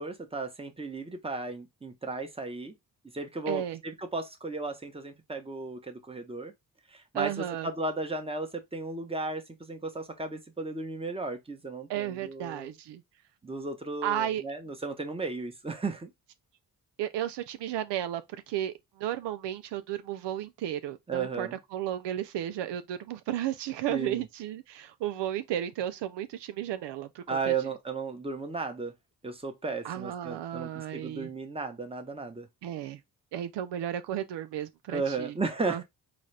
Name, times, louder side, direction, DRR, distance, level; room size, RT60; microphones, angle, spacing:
voice 1, 0.0-2.7 3.1-6.5 6.9-12.7 13.4-16.1 21.1-21.6 23.9-24.3 27.3-28.9 29.2-32.5 34.9-35.8, right 3 dB, 15° right, 1.0 m, -35 dB
voice 2, 3.5-3.8 7.1-7.7 11.9-13.0 14.0-14.4 17.0-18.2 18.5-27.5 29.8-31.3 32.6-33.0 33.3-35.3 35.7-35.8, right 11 dB, 80° right, 0.6 m, -33 dB
4.0 x 2.5 x 3.2 m
cardioid pair, 75°, 42 cm